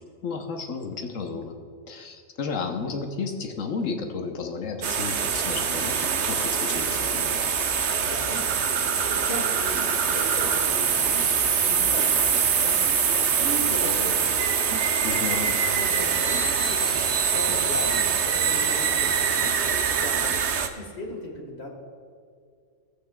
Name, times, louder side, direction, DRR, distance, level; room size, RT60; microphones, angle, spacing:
voice 1, 0.2-1.6 1.9-7.4 15.0-15.6, left 4 dB, 90° left, 4 dB, 1.3 m, -32 dB
sound 1, 4.8-20.7, right 6 dB, 65° right, 1.0 m, -24 dB
voice 2, 8.0-8.5 9.1-11.2 11.6-13.0 13.4-14.6 15.7-19.5 19.9-20.4 20.8-21.7, left 1 dB, 55° left, 0 dB, 1.9 m, -37 dB
17.0 x 8.5 x 2.4 m, 2.2 s
omnidirectional pair, 1.3 m